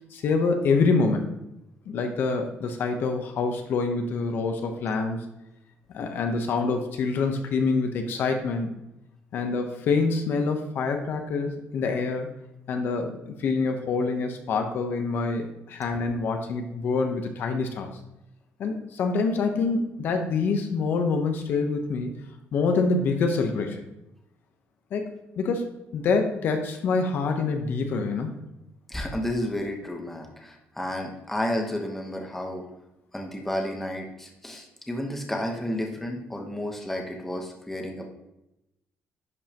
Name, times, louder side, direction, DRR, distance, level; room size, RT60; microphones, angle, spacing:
voice 1, 0.1-1.3 1.9-5.2 5.9-8.7 9.3-12.3 12.7-17.9 18.6-22.2 22.5-23.8 24.9-25.6 25.9-28.3, left 4 dB, 55° left, 4 dB, 0.9 m, -26 dB
voice 2, 28.9-32.6 33.1-38.0, left 1 dB, 5° left, 1 dB, 1.0 m, -31 dB
10.5 x 5.4 x 2.9 m, 0.89 s
cardioid pair, 160°, 4 cm